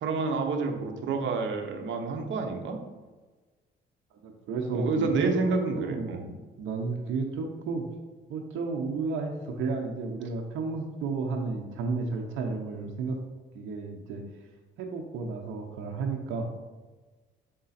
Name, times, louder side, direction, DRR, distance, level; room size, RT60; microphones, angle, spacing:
voice 1, 0.0-2.8 4.7-6.3, right 4 dB, 70° right, 4 dB, 1.1 m, -29 dB
voice 2, 4.1-7.8 8.3-13.2 13.5-14.2 14.8-16.5, right 4 dB, 90° right, 1 dB, 0.8 m, -32 dB
7.9 x 3.7 x 4.2 m, 1.3 s
cardioid pair, 90°, 20 cm